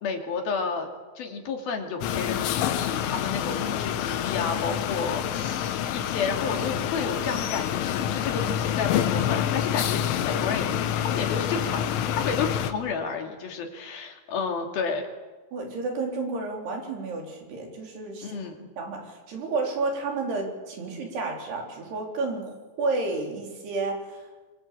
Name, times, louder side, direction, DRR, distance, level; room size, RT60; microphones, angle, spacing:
voice 1, 0.0-0.9 1.2-10.7 11.0-15.0 18.2-18.7, left 5 dB, 55° left, 3 dB, 4.1 m, -31 dB
sound 1, 2.0-12.7, left 10 dB, 85° left, 3.8 m, -27 dB
voice 2, 15.5-18.4 18.8-24.2, right 3 dB, 60° right, 2 dB, 5.9 m, -31 dB
25.5 x 24.0 x 8.5 m, 1.3 s
omnidirectional pair, 5.5 m